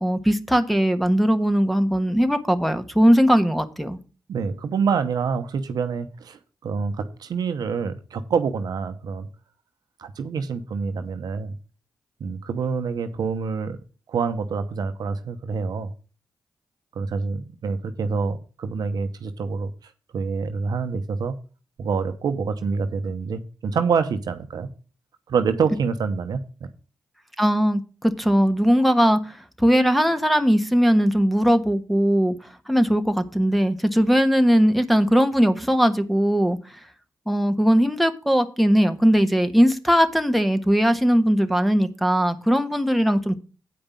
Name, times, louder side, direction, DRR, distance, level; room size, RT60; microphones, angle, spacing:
voice 1, 0.0-4.0 27.4-32.3 32.7-36.6 37.3-43.3, equal, ahead, 7 dB, 1.4 m, -19 dB
voice 2, 4.3-9.3 10.0-11.6 12.2-13.8 14.1-15.9 16.9-21.3 21.8-24.7 25.3-26.4, right 5 dB, 70° right, 9 dB, 0.9 m, -26 dB
8.7 x 5.1 x 7.2 m, 0.35 s
supercardioid pair, 40°, 7 cm